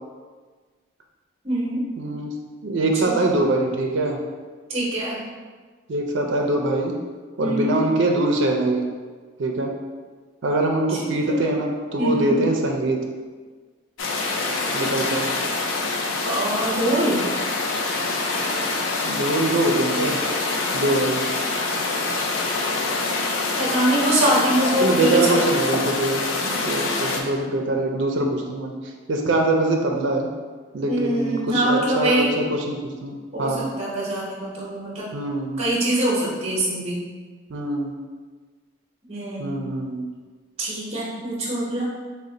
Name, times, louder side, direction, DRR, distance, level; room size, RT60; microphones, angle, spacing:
voice 1, 1.4-1.9 2.8-3.2 4.7-5.2 7.4-7.8 10.9-11.5 12.0-12.4 16.2-17.2 23.6-25.4 30.9-32.3 33.3-35.1 35.6-37.0 39.1-39.6 40.6-41.8, right 1 dB, 30° right, -6 dB, 0.8 m, -24 dB
voice 2, 2.0-2.3 2.6-4.2 5.9-7.0 7.4-8.8 9.4-9.7 10.4-13.0 14.7-15.3 19.0-20.2 20.7-21.2 24.8-28.7 29.1-30.3 30.7-33.7 35.1-35.6 37.5-37.9 39.4-40.1, right 2 dB, 70° right, 1 dB, 0.4 m, -23 dB
sound 1, 14.0-27.2, left 3 dB, 75° left, 0.5 m, -25 dB
4.1 x 2.1 x 3.8 m, 1.5 s
head